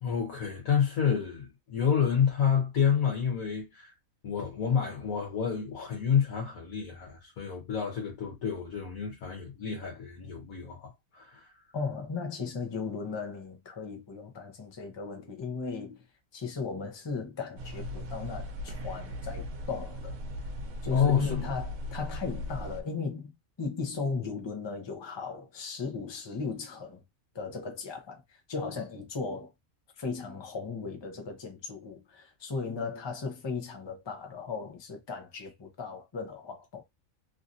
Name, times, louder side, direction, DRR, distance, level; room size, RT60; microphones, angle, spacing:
voice 1, 0.0-3.9 4.2-11.6 20.9-21.5, left 7 dB, 75° left, 1.4 m, -29 dB
voice 2, 11.7-16.0 16.3-20.2 20.8-27.0 27.3-29.5 30.0-36.8, left 4 dB, 25° left, 0.6 m, -36 dB
sound 1, 17.6-22.8, equal, 80° right, 1.2 m, -38 dB
3.1 x 2.7 x 2.6 m
omnidirectional pair, 1.5 m